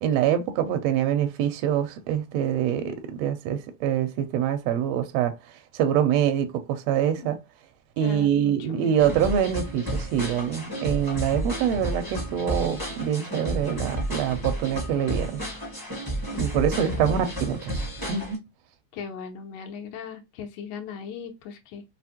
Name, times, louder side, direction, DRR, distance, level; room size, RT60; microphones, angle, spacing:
voice 1, 0.0-5.3 5.7-7.4 8.0-15.4 16.4-18.4, right 9 dB, 80° right, 1.6 m, -25 dB
voice 2, 8.0-9.1 16.3-16.5 16.9-17.3 18.9-21.8, left 7 dB, 90° left, 2.2 m, -38 dB
sound 1, 9.0-18.4, right 1 dB, 20° left, 0.6 m, -32 dB
4.9 x 2.1 x 2.8 m
omnidirectional pair, 3.4 m